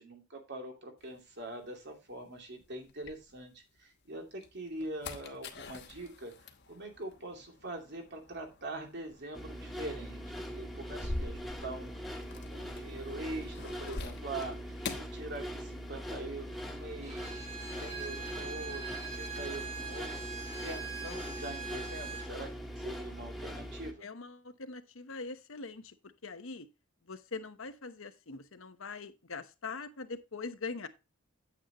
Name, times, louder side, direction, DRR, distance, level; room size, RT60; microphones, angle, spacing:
voice 1, 0.0-10.3 10.5-12.0 12.5-14.6 15.0-17.5 17.8-18.8 19.1-20.1 20.6-24.0, right 2 dB, 55° right, 2.7 m, -43 dB
sound 1, 1.0-3.8 4.2-16.0 16.3-17.1, left 2 dB, 55° left, 1.1 m, -46 dB
sound 2, 9.3-23.9, equal, ahead, 1.5 m, -42 dB
Bowed string instrument, 17.0-22.3, right 5 dB, 35° right, 5.0 m, -42 dB
voice 2, 17.4-17.9 24.0-26.0 26.2-26.7 27.0-30.9, left 4 dB, 75° left, 1.0 m, -43 dB
9.1 x 8.2 x 3.0 m
head